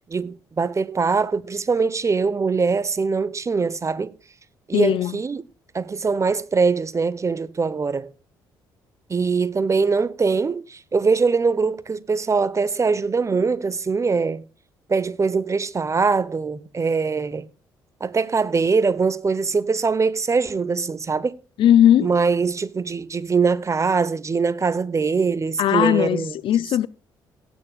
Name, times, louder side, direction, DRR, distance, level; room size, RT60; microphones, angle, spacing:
voice 1, 0.1-4.1 4.7-5.4 5.7-8.1 9.1-14.4 14.9-17.5 18.0-21.4 22.0-26.4, right 4 dB, 30° right, 0.9 m, -22 dB
voice 2, 4.7-5.1 21.6-22.1 25.6-26.9, left 11 dB, 65° left, 0.5 m, -18 dB
18.0 x 9.4 x 2.4 m
supercardioid pair, 60°, 9 cm